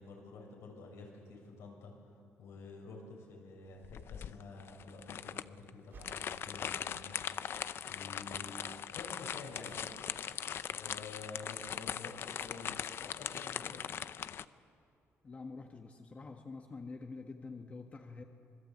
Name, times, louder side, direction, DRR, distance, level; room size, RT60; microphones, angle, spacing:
voice 1, 0.0-1.9 2.4-7.2 7.4-8.6 8.9-13.8, left 3 dB, 80° left, 0 dB, 6.8 m, -50 dB
sound 1, 3.8-14.4, left 9 dB, 55° left, 0.5 m, -40 dB
sound 2, 5.8-7.3 8.1-8.2 8.8-8.9 9.1-9.2 9.5-15.9, right 5 dB, 50° right, 3.5 m, -63 dB
voice 2, 15.2-18.2, left 4 dB, 30° left, 4 dB, 1.3 m, -47 dB
26.5 x 21.0 x 8.5 m, 2.4 s
cardioid pair, 125°, 5 cm